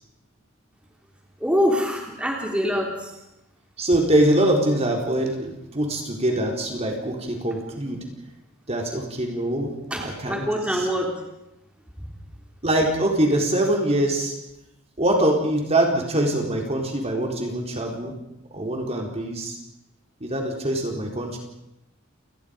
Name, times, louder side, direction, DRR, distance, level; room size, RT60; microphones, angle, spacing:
voice 1, 1.4-3.2 9.9-11.2, equal, 5° right, 0 dB, 3.7 m, -24 dB
voice 2, 3.8-8.0 8.7-10.8 12.6-14.3 15.0-18.2 18.5-19.6 20.2-21.4, right 1 dB, 30° right, 1 dB, 4.1 m, -23 dB
29.5 x 20.5 x 5.3 m, 0.86 s
head